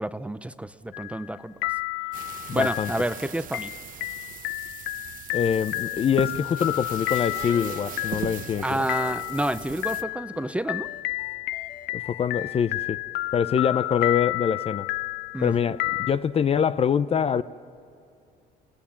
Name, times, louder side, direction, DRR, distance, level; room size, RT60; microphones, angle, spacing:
voice 1, 0.0-1.6 2.5-3.7 8.6-10.9 15.3-15.6, right 1 dB, 5° right, 0.6 m, -29 dB
sound 1, 0.9-1.4 1.6-16.1, left 20 dB, 85° left, 0.5 m, -31 dB
sound 2, 2.1-10.0, right 9 dB, 55° right, 1.0 m, -39 dB
voice 2, 2.5-2.9 5.3-8.8 11.9-13.0 13.3-14.9 15.4-15.8 16.1-17.4, left 7 dB, 35° left, 0.6 m, -24 dB
sound 3, 6.4-12.5, left 6 dB, 60° left, 2.3 m, -51 dB
29.0 x 18.5 x 7.3 m
cardioid pair, 110°, 17 cm